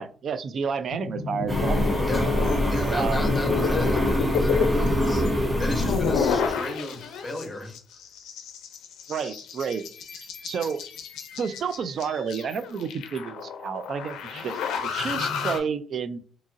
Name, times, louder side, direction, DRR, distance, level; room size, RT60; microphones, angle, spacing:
voice 1, 0.0-2.1 2.8-3.4 9.1-9.8 10.4-10.8 11.4-16.2, right 6 dB, 60° right, 11 dB, 0.3 m, -30 dB
sound 1, 0.9-7.4 7.7-15.6, left 5 dB, 85° left, 0.4 m, -30 dB
sound 2, 1.5-6.5, equal, 10° right, 0.6 m, -25 dB
voice 2, 2.7-7.8, left 1 dB, 15° left, 3 dB, 0.9 m, -35 dB
2.8 x 2.4 x 2.6 m, 0.42 s
cardioid pair, 90°, 0 cm